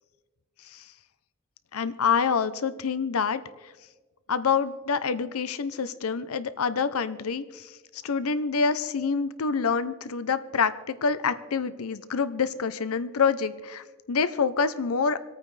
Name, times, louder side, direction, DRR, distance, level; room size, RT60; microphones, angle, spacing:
voice 1, 1.7-3.7 4.3-15.2, left 5 dB, 90° left, 13 dB, 0.6 m, -27 dB
27.0 x 9.1 x 3.3 m, 1.3 s
head